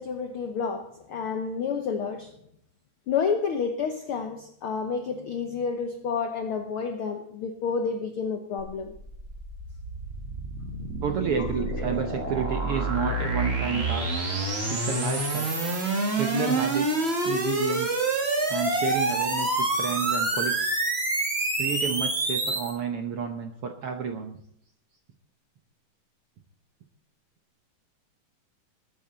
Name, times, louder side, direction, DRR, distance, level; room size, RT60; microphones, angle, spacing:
voice 1, 0.0-2.4 3.1-8.9, left 5 dB, 75° left, 1.2 m, -30 dB
sound 1, 8.6-22.7, right 2 dB, 25° right, 1.7 m, -27 dB
voice 2, 11.0-14.2 14.7-15.6 16.2-18.0 18.5-20.7 21.6-24.4, right 6 dB, 70° right, 1.4 m, -31 dB
20.5 x 8.7 x 4.1 m
omnidirectional pair, 3.8 m